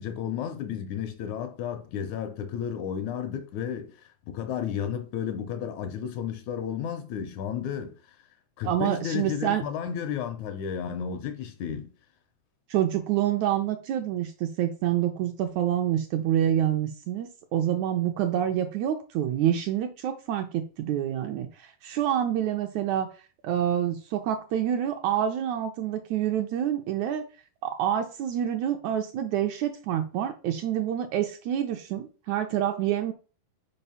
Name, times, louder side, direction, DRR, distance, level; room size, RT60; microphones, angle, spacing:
voice 1, 0.0-8.2 8.6-11.9, left 8 dB, 75° left, 1.9 m, -33 dB
voice 2, 8.6-9.6 12.7-27.2 27.6-33.1, right 10 dB, 80° right, 1.7 m, -27 dB
5.5 x 4.8 x 5.5 m
omnidirectional pair, 3.8 m